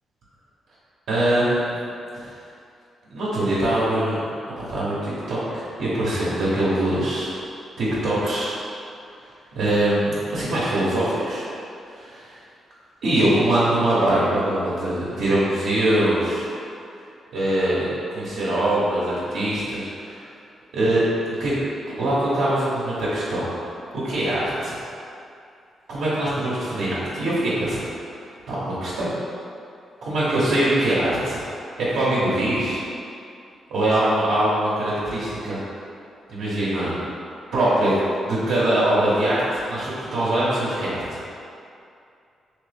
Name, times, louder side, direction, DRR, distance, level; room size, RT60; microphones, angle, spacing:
voice 1, 1.1-1.8 3.1-4.2 4.6-7.4 7.8-8.6 9.5-11.4 11.9-12.2 13.0-16.5 17.3-20.2 20.7-21.5 21.9-23.5 24.0-24.8 25.9-27.8 28.5-29.1 30.0-31.4 31.8-32.8 33.7-35.6 36.3-37.0 37.5-38.0 38.3-41.2, right 1 dB, 80° right, -9 dB, 0.9 m, -22 dB
3.1 x 3.0 x 3.3 m, 2.5 s
cardioid pair, 105°, 0 cm